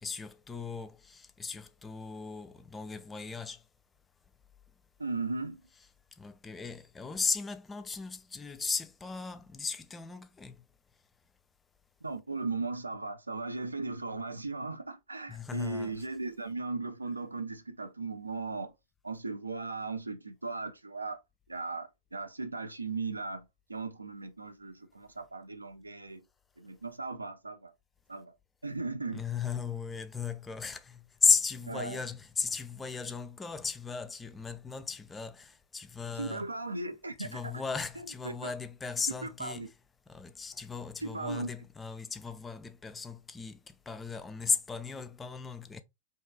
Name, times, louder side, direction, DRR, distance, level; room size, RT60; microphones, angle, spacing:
voice 1, 0.0-3.6 6.2-10.6 15.3-16.1 29.1-36.5 37.2-39.7 40.1-45.8, left 5 dB, 15° left, 0.3 m, -35 dB
voice 2, 5.0-5.6 12.0-18.7 19.0-21.2 21.5-23.4 23.7-26.2 26.6-27.7 28.1-28.3 28.6-29.2 31.7-32.0 36.2-37.6 38.2-38.5 39.2-39.7 41.0-41.5, right 3 dB, 80° right, 0.3 m, -37 dB
2.7 x 2.2 x 2.2 m
figure-of-eight pair, 90°, 0 cm